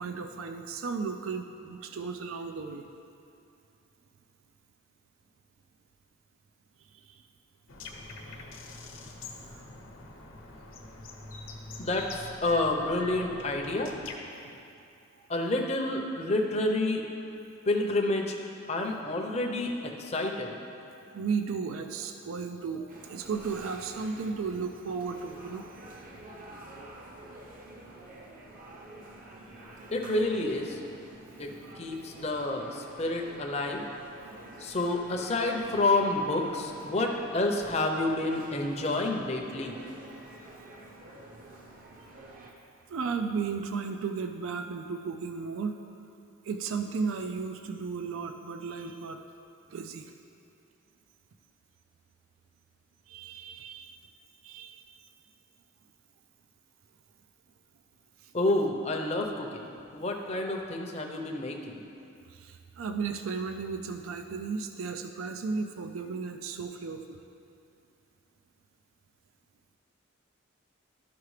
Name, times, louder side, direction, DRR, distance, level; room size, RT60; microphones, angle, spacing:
voice 1, 0.0-2.9 6.9-7.2 8.3-8.6 9.2-9.7 21.1-25.7 26.1-26.2 42.9-45.7 46.4-49.2 49.7-50.1 53.1-54.0 54.4-54.9 58.2-58.3 62.3-67.2, right 5 dB, 75° right, 6 dB, 0.4 m, -35 dB
sound 1, 7.7-14.2, left 3 dB, 65° left, 0.9 m, -44 dB
voice 2, 11.8-13.9 15.3-17.0 17.7-18.4 18.7-20.6 29.9-30.8 31.4-33.8 34.6-39.8 58.3-59.7 59.9-61.8, left 2 dB, 30° left, 1 dB, 0.6 m, -29 dB
sound 2, 22.9-42.5, right 2 dB, 40° right, 0.8 m, -48 dB
12.5 x 5.7 x 3.2 m, 2.6 s
head